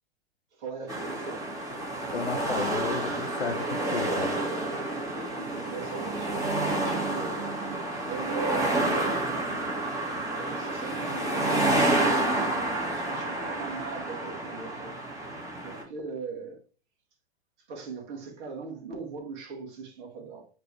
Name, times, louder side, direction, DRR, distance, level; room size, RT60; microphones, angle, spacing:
voice 1, 0.6-1.5 4.8-6.4 6.8-7.4 8.1-9.3 10.3-12.4 12.9-14.9 15.6-16.6 17.7-20.5, right 5 dB, 45° right, 2.2 m, -39 dB
sound 1, 0.9-15.8, right 2 dB, 10° right, 1.9 m, -29 dB
voice 2, 2.1-4.4, left 5 dB, 85° left, 0.8 m, -34 dB
8.9 x 3.4 x 3.3 m
figure-of-eight pair, 105°, 32 cm